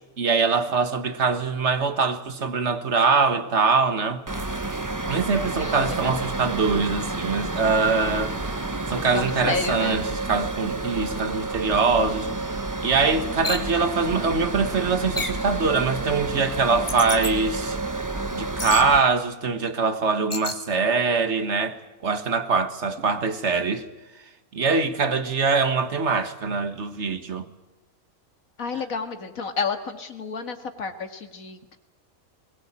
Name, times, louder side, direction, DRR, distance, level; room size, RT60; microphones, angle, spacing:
voice 1, 0.2-4.2 5.1-8.3 8.9-12.3 12.8-17.8 18.3-23.9 24.5-27.5, right 4 dB, 55° right, 1.7 m, -23 dB
sound 1, 4.3-19.0, right 2 dB, 15° right, 1.0 m, -30 dB
voice 2, 5.4-6.3 9.1-10.1 28.6-31.8, left 5 dB, 70° left, 2.3 m, -31 dB
sound 2, 13.4-13.7 15.2-15.5 16.9-17.3 18.6-18.9 20.3-20.6, left 2 dB, 20° left, 1.4 m, -30 dB
21.0 x 20.5 x 8.7 m
omnidirectional pair, 1.5 m